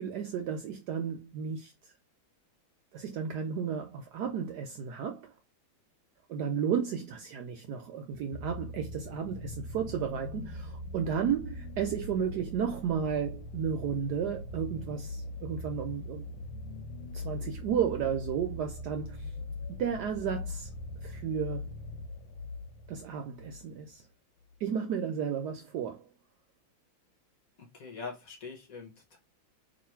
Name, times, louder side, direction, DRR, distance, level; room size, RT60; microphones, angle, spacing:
voice 1, 0.0-1.9 2.9-5.3 6.3-16.3 17.1-19.3 19.7-20.7 21.0-21.6 22.9-24.0 24.6-26.1, right 7 dB, 75° right, 0.9 m, -33 dB
sound 1, 8.1-23.7 24.5-24.6, left 2 dB, 75° left, 1.3 m, -41 dB
voice 2, 27.6-29.2, left 5 dB, 55° left, 1.0 m, -43 dB
3.2 x 2.4 x 4.3 m
omnidirectional pair, 2.2 m